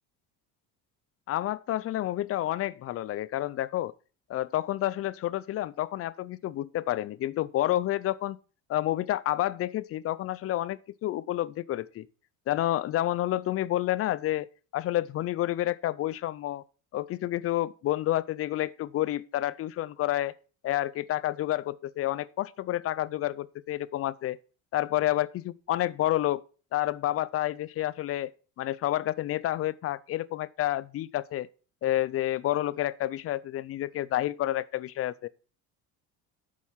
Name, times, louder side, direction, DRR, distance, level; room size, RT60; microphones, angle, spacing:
voice 1, 1.3-3.9 4.3-8.4 8.7-12.1 12.5-14.5 14.7-16.6 16.9-20.3 20.6-24.4 24.7-26.4 26.7-28.3 28.6-31.5 31.8-35.3, left 14 dB, 40° left, 0.5 m, -29 dB
8.3 x 7.4 x 5.7 m
cardioid pair, 135°, 36 cm